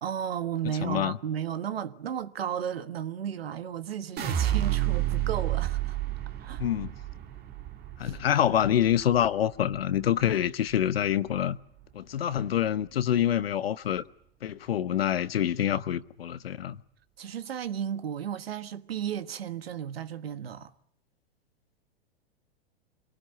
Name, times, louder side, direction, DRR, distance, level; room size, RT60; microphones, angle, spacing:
voice 1, 0.0-6.0 6.4-6.6 8.0-8.1 17.2-20.7, right 9 dB, 75° right, 1.4 m, -34 dB
voice 2, 0.6-1.2 6.6-6.9 8.0-11.6 11.9-14.0 14.4-16.8, left 10 dB, 70° left, 1.0 m, -26 dB
sound 1, 4.2-10.3 10.7-11.3, right 13 dB, 30° right, 2.0 m, -31 dB
26.5 x 19.0 x 9.7 m
hypercardioid pair, 105°, 31 cm